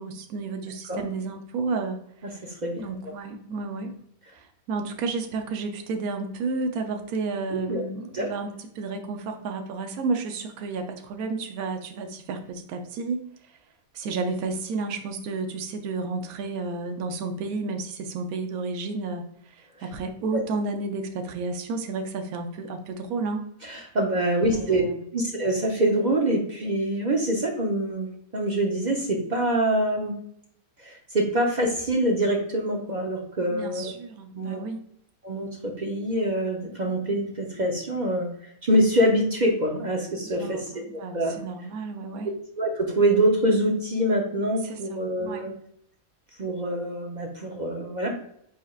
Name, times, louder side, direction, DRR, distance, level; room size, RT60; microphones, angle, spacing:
voice 1, 0.0-4.0 4.3-13.2 13.9-23.4 24.5-25.0 33.5-34.8 40.3-42.3 44.6-45.5, right 3 dB, 80° right, 5 dB, 1.1 m, -32 dB
voice 2, 2.4-2.8 7.7-7.8 8.1-8.3 23.6-24.8 25.1-30.2 30.8-33.9 34.3-34.6 35.2-40.6 41.1-41.3 42.6-45.5 46.4-48.1, right 1 dB, 45° right, 0 dB, 0.6 m, -25 dB
4.8 x 4.2 x 2.4 m, 0.69 s
omnidirectional pair, 1.5 m